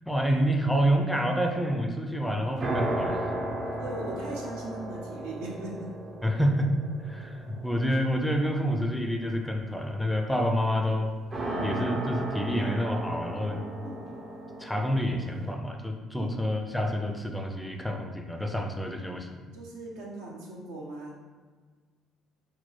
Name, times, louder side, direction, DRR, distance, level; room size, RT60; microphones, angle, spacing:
voice 1, 0.1-3.3 6.2-6.7 7.0-11.1 11.6-13.6 14.6-19.4, equal, 5° left, 3 dB, 0.5 m, -28 dB
sound 1, 2.6-8.9 11.3-15.5, right 1 dB, 35° right, 0.6 m, -35 dB
voice 2, 3.8-6.0 12.6-12.8 13.8-14.1 16.1-16.3 18.8-19.0 19.5-21.2, right 2 dB, 70° right, -3 dB, 0.8 m, -39 dB
4.3 x 2.1 x 4.0 m, 1.5 s
figure-of-eight pair, 50°, 0 cm